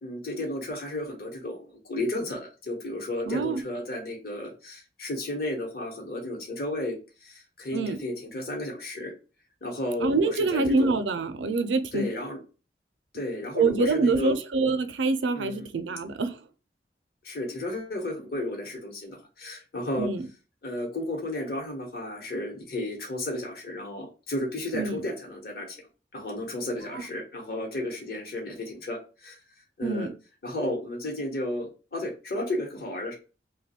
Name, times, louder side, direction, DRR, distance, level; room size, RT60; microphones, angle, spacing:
voice 1, 0.0-7.0 7.2-9.1 9.6-11.0 11.9-12.4 13.1-14.4 15.3-15.7 17.2-20.1 20.6-25.8 26.1-29.4 29.8-30.1 30.4-33.1, left 1 dB, 55° left, 1.0 m, -33 dB
voice 2, 3.3-3.6 7.7-8.0 10.0-12.1 13.6-16.4 20.0-20.2 24.7-25.0 26.9-27.0 29.8-30.1, right 3 dB, 85° right, 0.5 m, -25 dB
2.9 x 2.2 x 4.1 m
head